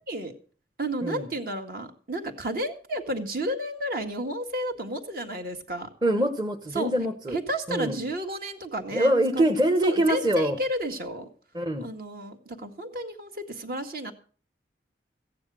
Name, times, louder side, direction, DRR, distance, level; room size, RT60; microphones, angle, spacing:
voice 1, 0.8-5.9 6.7-6.9 7.3-9.4 9.8-11.3 11.8-14.1, right 1 dB, 55° right, 5 dB, 1.8 m, -32 dB
voice 2, 6.0-7.4 7.7-8.0 8.9-10.6 11.5-11.9, right 1 dB, 25° right, 5 dB, 1.0 m, -24 dB
15.0 x 9.6 x 6.2 m, 0.42 s
head